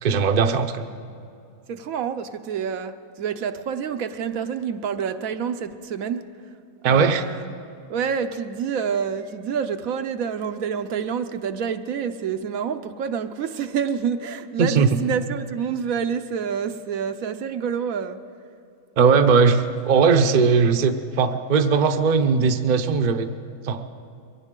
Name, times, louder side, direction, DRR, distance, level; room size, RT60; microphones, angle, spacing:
voice 1, 0.0-0.9 6.8-7.2 14.6-15.0 19.0-23.3 23.6-23.8, right 5 dB, 45° right, 7 dB, 0.7 m, -19 dB
voice 2, 1.7-6.3 6.8-7.5 7.9-18.2, right 7 dB, 75° right, 8 dB, 1.1 m, -28 dB
22.5 x 17.0 x 3.7 m, 2.5 s
omnidirectional pair, 1.5 m